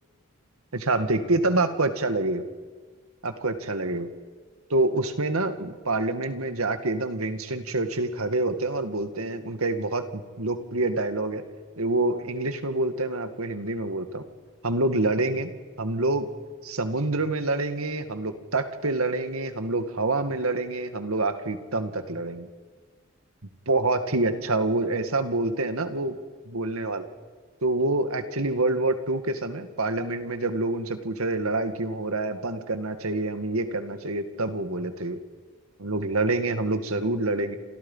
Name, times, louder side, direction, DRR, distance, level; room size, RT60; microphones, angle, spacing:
voice 1, 0.7-2.4 3.2-4.1 4.7-11.4 11.8-14.2 14.6-15.5 15.8-16.3 16.6-22.5 23.7-26.1 26.5-27.1 27.6-35.2 35.8-37.6, right 2 dB, 85° right, 8 dB, 2.1 m, -27 dB
29.5 x 27.0 x 5.7 m, 1.5 s
head